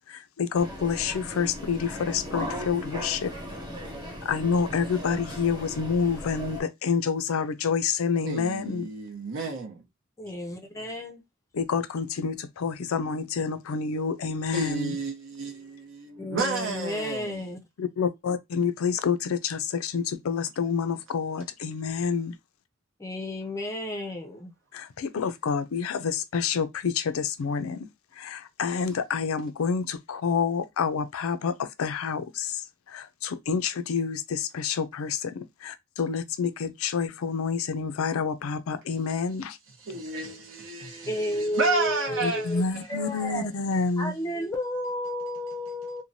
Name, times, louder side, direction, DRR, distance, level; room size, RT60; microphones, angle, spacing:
voice 1, 0.1-3.3 4.2-8.9 11.5-14.9 17.8-22.4 24.7-27.8 28.2-39.6 42.2-44.1, left 6 dB, 85° left, 0.4 m, -28 dB
sound 1, 0.5-6.6, equal, 20° right, 1.0 m, -37 dB
voice 2, 8.2-9.8 14.5-17.4 39.9-42.5, right 3 dB, 65° right, 0.7 m, -31 dB
voice 3, 10.2-11.2 16.2-17.6 23.0-24.5 41.1-43.5 44.0-46.0, left 1 dB, 15° left, 0.5 m, -32 dB
3.1 x 2.2 x 2.6 m
head